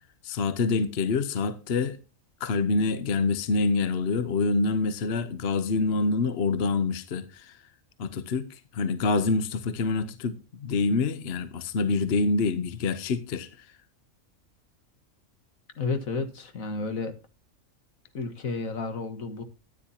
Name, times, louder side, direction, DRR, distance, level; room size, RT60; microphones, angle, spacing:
voice 1, 0.2-2.0 2.4-7.6 8.0-13.7, left 4 dB, 55° left, 1.0 m, -26 dB
voice 2, 15.8-17.2 18.1-19.4, left 3 dB, 75° left, 1.9 m, -31 dB
14.0 x 9.8 x 2.8 m
omnidirectional pair, 1.4 m